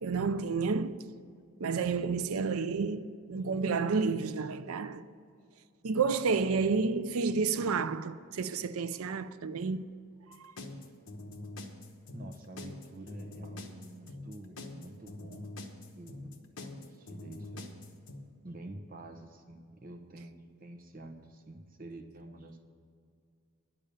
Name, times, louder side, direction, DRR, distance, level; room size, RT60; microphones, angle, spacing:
voice 1, 0.0-1.0 1.6-5.0 5.8-9.8, right 4 dB, 85° right, 0.5 m, -30 dB
sound 1, 10.3-18.2, left 2 dB, 75° left, 1.1 m, -44 dB
voice 2, 12.1-15.5 15.9-17.8 18.4-22.6, right 1 dB, 40° right, 0.9 m, -48 dB
10.0 x 7.0 x 8.8 m
head